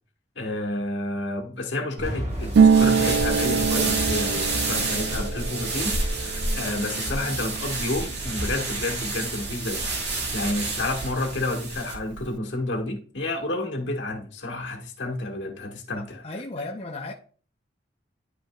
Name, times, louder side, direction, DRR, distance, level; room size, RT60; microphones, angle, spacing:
voice 1, 0.3-16.2, left 2 dB, 80° left, 1.4 m, -30 dB
sound 1, 2.0-6.1, equal, 40° right, 1.5 m, -36 dB
sound 2, 2.4-11.9, right 2 dB, 65° right, 1.6 m, -29 dB
Harp, 2.5-10.0 10.3-11.4 11.7-12.3, right 6 dB, 80° right, 0.3 m, -25 dB
voice 2, 16.0-17.1, left 2 dB, 35° left, 0.6 m, -35 dB
10.5 x 5.2 x 2.3 m
head